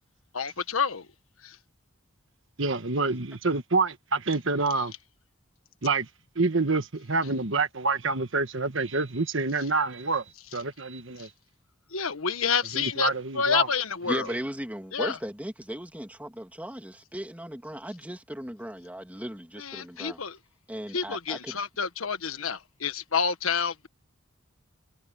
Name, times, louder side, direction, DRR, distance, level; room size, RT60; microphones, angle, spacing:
voice 1, 0.3-1.1 1.4-1.6 11.9-13.1 13.3-14.3 14.9-15.2 19.6-20.4 20.9-23.9, left 6 dB, 80° left, 1.4 m, -28 dB
voice 2, 2.6-4.9 5.8-6.1 6.3-10.2 10.5-11.3 12.7-13.7, right 3 dB, 60° right, 1.5 m, -27 dB
voice 3, 14.1-20.2 20.7-21.6, equal, 5° right, 2.6 m, -37 dB
head